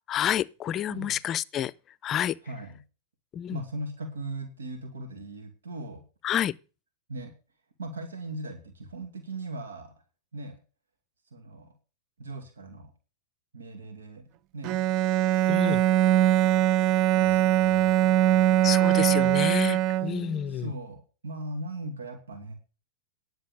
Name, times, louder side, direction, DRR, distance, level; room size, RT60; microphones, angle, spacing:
voice 1, 0.1-1.7 2.0-2.4 3.3-3.6 6.2-6.5 15.5-15.8 18.6-20.7, left 10 dB, 35° left, 0.5 m, -29 dB
voice 2, 2.4-2.8 3.5-6.0 7.1-7.3 7.8-9.9 10.3-10.6 11.3-11.7 12.2-12.9 13.5-14.3 14.5-14.8 16.1-16.6 17.1-19.3 20.1-20.2 20.5-22.5, right 2 dB, 85° right, 2.5 m, -39 dB
Bowed string instrument, 14.6-20.4, right 13 dB, 45° right, 0.5 m, -22 dB
10.5 x 7.7 x 6.6 m
hypercardioid pair, 105°, 0 cm